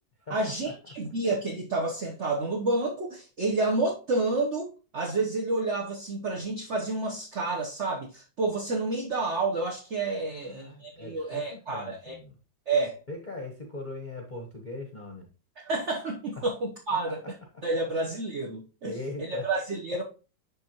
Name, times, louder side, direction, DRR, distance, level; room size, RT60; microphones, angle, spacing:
voice 1, 0.3-12.2 12.7-13.0 15.6-17.2 17.6-20.0, right 2 dB, 45° right, 1.0 m, -29 dB
voice 2, 10.3-12.3 13.1-15.3 16.4-16.5 16.9-17.6 18.8-19.5, left 2 dB, 30° left, 1.0 m, -40 dB
10.5 x 3.6 x 2.9 m
omnidirectional pair, 2.1 m